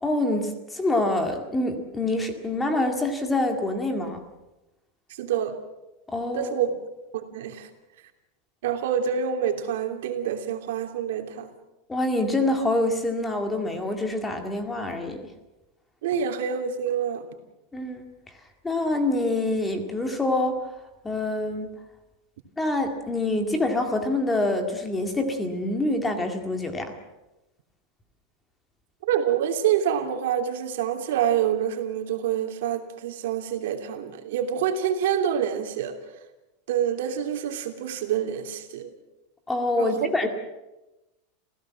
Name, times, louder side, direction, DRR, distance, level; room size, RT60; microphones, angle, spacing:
voice 1, 0.0-4.2 6.1-6.5 11.9-15.2 17.7-18.0 18.6-20.7 21.0-21.7 22.6-26.9 39.5-40.3, left 2 dB, 10° left, 5 dB, 2.1 m, -26 dB
voice 2, 5.2-5.5 6.3-6.7 7.1-7.7 8.6-11.5 16.0-17.3 29.0-36.0 36.7-38.9 39.8-39.9, right 9 dB, 75° right, 5 dB, 3.0 m, -27 dB
27.5 x 16.0 x 7.6 m, 1.0 s
supercardioid pair, 170°, 0 cm